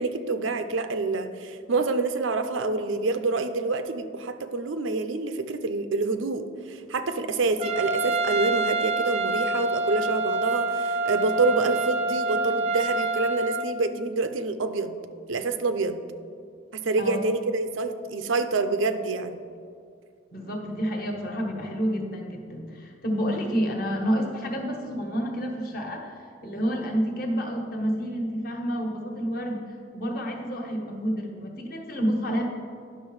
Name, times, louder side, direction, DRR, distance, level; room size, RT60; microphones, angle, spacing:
voice 1, 0.0-15.0 15.3-16.0 16.7-19.4, right 3 dB, 85° right, 9 dB, 0.6 m, -27 dB
Trumpet, 7.6-13.7, right 3 dB, 30° right, 0.5 m, -27 dB
voice 2, 20.3-26.1 26.4-29.6 29.9-32.4, equal, 50° left, 1 dB, 1.3 m, -29 dB
10.0 x 6.2 x 4.8 m, 2.3 s
head